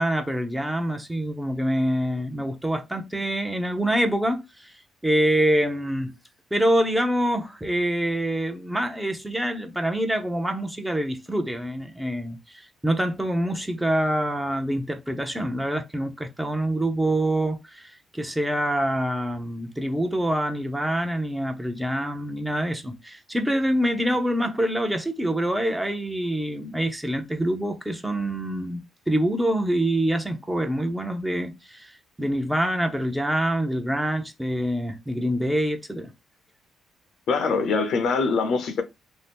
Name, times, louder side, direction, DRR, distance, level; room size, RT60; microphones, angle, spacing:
voice 1, 0.0-4.7 5.0-6.1 6.5-36.1, right 1 dB, 10° right, 0.6 m, -26 dB
voice 2, 37.3-38.8, left 4 dB, 70° left, 0.6 m, -23 dB
2.7 x 2.0 x 3.4 m
cardioid pair, 90°, 0 cm